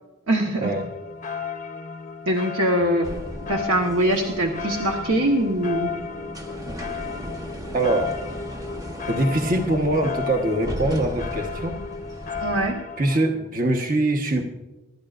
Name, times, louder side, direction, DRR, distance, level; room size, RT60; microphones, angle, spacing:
voice 1, 0.3-0.7 2.3-3.1 3.5-5.9 12.4-12.8, right 1 dB, 65° right, 2 dB, 1.3 m, -22 dB
sound 1, 0.6-13.3, left 6 dB, 35° left, 0.7 m, -34 dB
sound 2, 3.0-12.7, equal, 15° right, 1.1 m, -36 dB
voice 2, 7.7-8.1 9.0-11.8 13.0-14.5, right 1 dB, 40° right, 3 dB, 1.2 m, -23 dB
26.0 x 12.5 x 2.5 m, 1.1 s
head